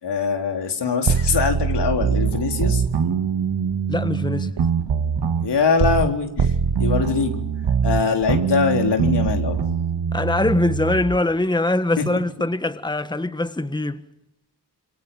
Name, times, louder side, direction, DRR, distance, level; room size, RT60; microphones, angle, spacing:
voice 1, 0.0-2.8 5.4-7.4 7.8-9.6 12.0-12.1 12.4-12.5, left 5 dB, 80° left, 4.0 m, -22 dB
sound 1, 1.1-6.1 6.4-11.2, right 6 dB, 70° right, 1.9 m, -23 dB
voice 2, 3.9-4.5 10.1-14.0, left 2 dB, 10° left, 1.5 m, -22 dB
26.5 x 23.0 x 7.3 m
cardioid pair, 60°, 41 cm